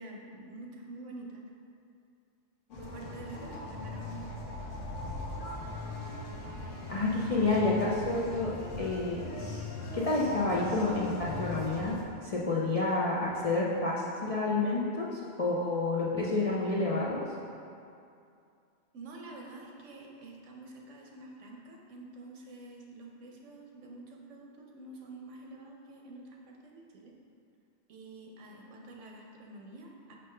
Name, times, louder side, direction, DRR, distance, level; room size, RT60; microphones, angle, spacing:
voice 1, 0.0-1.4 2.7-4.7 18.9-27.1 27.9-30.1, right 2 dB, 85° right, 0 dB, 1.1 m, -47 dB
sound 1, 2.7-12.0, left 2 dB, 85° left, 1.1 m, -40 dB
voice 2, 6.9-9.2 9.9-12.0 12.2-17.2, left 2 dB, 45° left, -6 dB, 0.5 m, -29 dB
5.4 x 5.3 x 3.3 m, 2.5 s
omnidirectional pair, 1.2 m